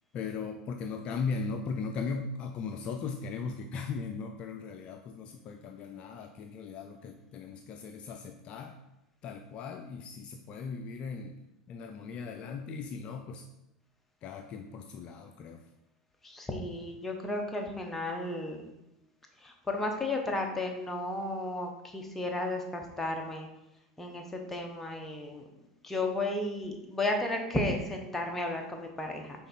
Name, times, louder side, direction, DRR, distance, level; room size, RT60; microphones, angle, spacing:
voice 1, 0.1-8.8 9.2-11.4 11.7-13.4 14.2-15.6, left 5 dB, 45° left, 4 dB, 0.5 m, -38 dB
voice 2, 16.2-18.7 19.4-23.5 24.0-25.4 25.8-29.5, left 2 dB, 10° left, 2 dB, 1.1 m, -33 dB
5.7 x 4.0 x 4.2 m, 0.91 s
hypercardioid pair, 95°, 2 cm